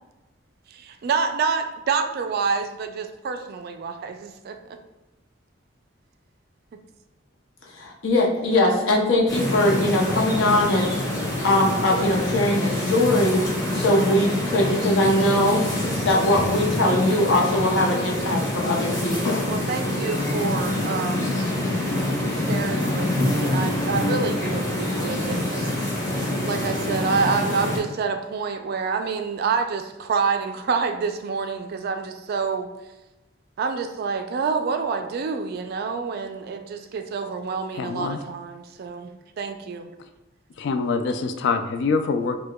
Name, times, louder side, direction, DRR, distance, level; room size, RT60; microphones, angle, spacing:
voice 1, 0.7-4.6 19.5-21.3 22.3-25.7 26.5-32.7 33.6-39.1 39.4-39.9, right 5 dB, 55° right, 7 dB, 0.3 m, -27 dB
voice 2, 7.7-10.9 11.4-13.4 13.7-15.6 16.0-19.4, left 1 dB, 85° left, -1 dB, 0.7 m, -21 dB
sound 1, 9.3-27.8, left 1 dB, 15° left, 1.0 m, -26 dB
voice 3, 37.7-38.2 40.6-42.4, left 4 dB, 65° left, 8 dB, 0.3 m, -25 dB
4.5 x 2.2 x 2.2 m, 1.0 s
head